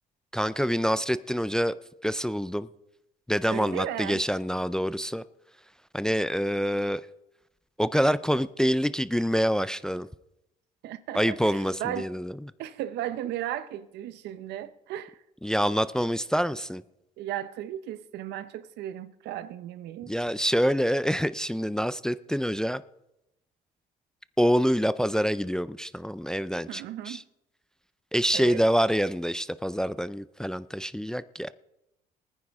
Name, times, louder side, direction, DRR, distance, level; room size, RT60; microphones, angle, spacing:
voice 1, 0.3-1.8 2.0-2.7 3.3-5.2 5.9-7.0 7.8-10.1 11.1-12.3 15.4-16.8 20.1-22.8 24.4-27.2 28.1-31.5, equal, 5° left, 0.4 m, -26 dB
voice 2, 3.5-4.2 10.8-12.1 12.6-15.2 17.2-20.1 26.7-27.2 28.3-28.6, right 12 dB, 80° right, 0.8 m, -35 dB
21.0 x 9.8 x 3.5 m
cardioid pair, 110°, 17 cm